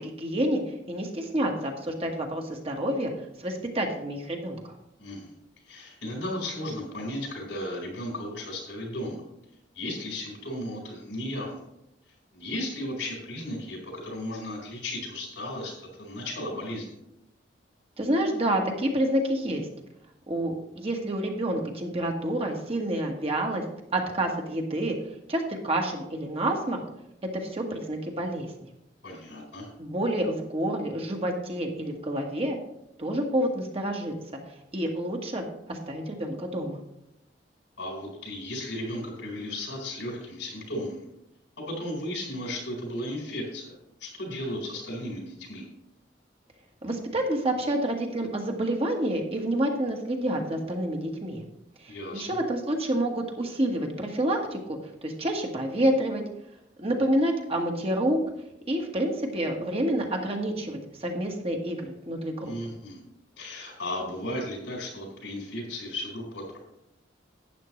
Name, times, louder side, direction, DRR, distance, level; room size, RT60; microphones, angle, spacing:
voice 1, 0.0-3.1 3.4-4.7 18.0-19.7 20.3-23.6 23.9-25.0 25.3-26.8 27.3-28.7 29.8-32.6 33.0-34.4 34.7-36.8 46.8-51.4 51.8-56.2 56.8-58.2 58.7-62.5, right 1 dB, 35° right, 2 dB, 1.5 m, -28 dB
voice 2, 5.0-5.3 5.7-9.2 9.7-11.6 12.3-16.9 29.0-29.7 37.8-41.1 41.6-45.7 51.9-52.4 62.4-63.0 63.4-66.6, left 1 dB, 90° left, 0 dB, 4.5 m, -35 dB
12.0 x 9.3 x 3.2 m, 0.84 s
head